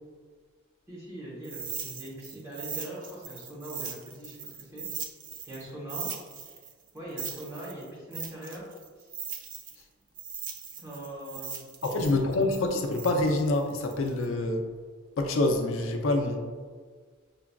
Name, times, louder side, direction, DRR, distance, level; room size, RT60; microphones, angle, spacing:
voice 1, 0.9-4.8 5.5-6.1 6.9-8.7 9.0-9.1 10.8-12.2, right 1 dB, 15° right, -7 dB, 1.1 m, -41 dB
sound 1, 1.4-5.6 5.9-9.8 10.2-14.3, right 7 dB, 40° right, 0.3 m, -39 dB
voice 2, 11.8-14.7 15.2-16.4, left 2 dB, 80° left, 3 dB, 0.5 m, -26 dB
5.8 x 2.3 x 2.3 m, 1.5 s
head